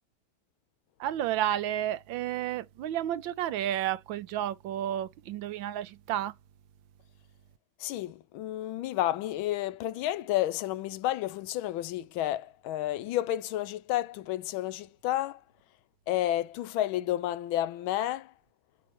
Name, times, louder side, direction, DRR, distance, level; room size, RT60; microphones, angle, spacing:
voice 1, 1.0-6.3, right 12 dB, 75° right, 1.3 m, -31 dB
voice 2, 7.8-15.4 16.1-18.3, left 14 dB, 80° left, 1.4 m, -31 dB
7.5 x 5.7 x 3.0 m
omnidirectional pair, 2.2 m